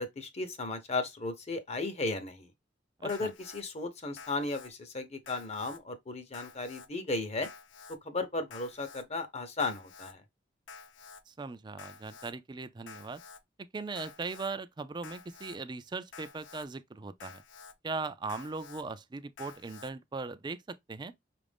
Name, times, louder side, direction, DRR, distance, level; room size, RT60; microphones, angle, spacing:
voice 1, 0.0-2.5 3.0-7.5 8.0-10.2, left 3 dB, 35° left, 0.8 m, -35 dB
voice 2, 3.0-3.3 11.3-13.2 13.7-17.4 17.8-21.1, right 3 dB, 25° right, 0.4 m, -39 dB
Alarm, 3.1-3.6 4.2-4.7 5.3-5.8 6.3-6.9 7.4-8.0 8.5-9.0 9.6-10.1 10.7-11.2 11.8-12.3 12.9-13.4 14.0-14.5 15.0-15.6 16.1-16.7 17.2-17.7 18.3-18.8 19.4-19.9, left 5 dB, 85° left, 0.6 m, -50 dB
5.7 x 2.5 x 3.4 m
head